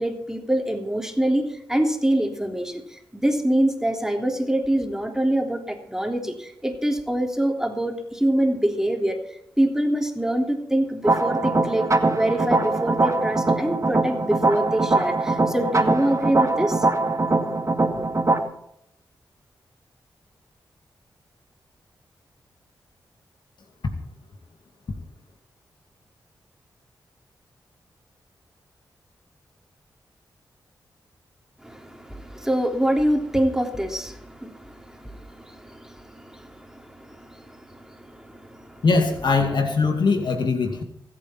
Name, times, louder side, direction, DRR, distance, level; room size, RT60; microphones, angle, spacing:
voice 1, 0.0-16.9 17.9-18.1 31.6-38.8, right 1 dB, 5° right, 2 dB, 3.3 m, -25 dB
sound 1, 11.0-18.4, right 2 dB, 40° right, 2.1 m, -22 dB
voice 2, 38.8-40.8, left 4 dB, 65° left, 4 dB, 2.4 m, -21 dB
24.0 x 8.7 x 4.4 m, 0.77 s
cardioid pair, 45°, 8 cm